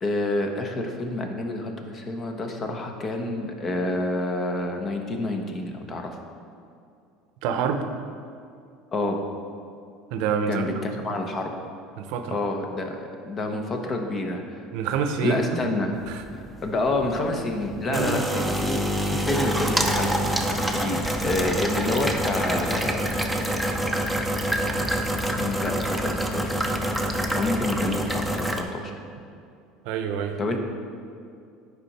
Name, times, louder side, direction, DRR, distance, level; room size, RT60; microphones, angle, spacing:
voice 1, 0.0-6.2 8.9-9.2 10.5-11.5 12.3-14.6 15.2-15.9 16.3-23.1 25.3-26.9 27.3-28.9 30.4-30.6, left 2 dB, 35° left, 4 dB, 1.0 m, -28 dB
voice 2, 7.4-7.8 10.1-10.8 12.0-12.4 14.7-15.6 16.1-16.2 17.9-18.3 29.8-30.4, right 6 dB, 70° right, 7 dB, 0.7 m, -27 dB
sound 1, 15.9-28.6, equal, ahead, 0.7 m, -27 dB
9.7 x 4.9 x 4.2 m, 2.4 s
supercardioid pair, 110°, 0 cm